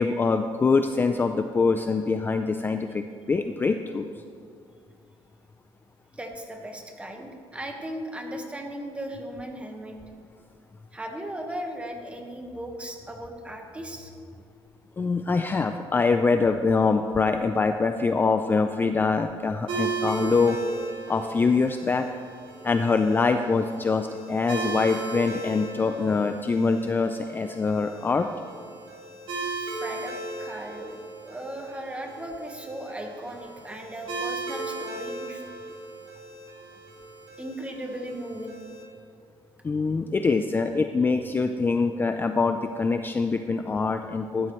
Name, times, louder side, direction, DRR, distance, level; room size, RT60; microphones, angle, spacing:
voice 1, 0.0-3.0 3.3-4.1 15.0-20.6 21.1-22.1 22.6-28.3 39.6-44.5, left 4 dB, 20° left, 7 dB, 0.4 m, -24 dB
voice 2, 6.1-10.0 10.9-14.1 29.5-31.0 31.2-35.4 37.4-38.6, right 1 dB, 10° right, 3 dB, 1.3 m, -37 dB
sound 1, 19.7-38.8, right 3 dB, 60° right, 2.6 m, -37 dB
14.0 x 12.0 x 3.1 m, 2.2 s
cardioid pair, 125°, 10 cm